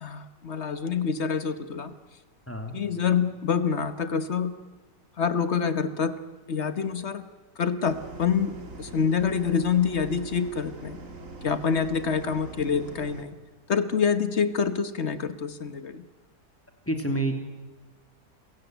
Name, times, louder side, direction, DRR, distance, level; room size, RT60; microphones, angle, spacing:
voice 1, 0.0-1.9 2.7-4.5 5.2-6.2 6.5-7.2 7.6-11.0 11.4-13.3 13.7-16.1, left 6 dB, 45° left, 12 dB, 1.3 m, -26 dB
sound 1, 7.9-13.2, right 2 dB, 45° right, 2.5 m, -42 dB
voice 2, 16.9-17.4, right 1 dB, 5° left, 5 dB, 2.8 m, -28 dB
30.0 x 16.0 x 9.2 m, 1.3 s
omnidirectional pair, 1.9 m